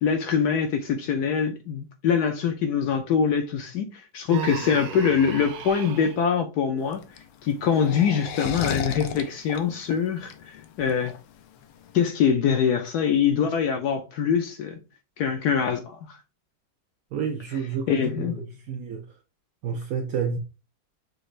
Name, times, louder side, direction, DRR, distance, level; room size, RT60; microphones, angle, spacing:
voice 1, 0.0-7.0 7.4-11.1 11.9-14.7 15.2-16.2 17.9-18.5, left 7 dB, 70° left, 1.0 m, -24 dB
Human voice, 4.3-6.2, right 7 dB, 65° right, 1.0 m, -35 dB
sound 1, 6.8-12.0, left 8 dB, 85° left, 1.4 m, -34 dB
voice 2, 17.1-18.4 18.7-19.0 19.6-20.4, right 6 dB, 85° right, 0.7 m, -29 dB
6.2 x 2.4 x 3.1 m
omnidirectional pair, 2.1 m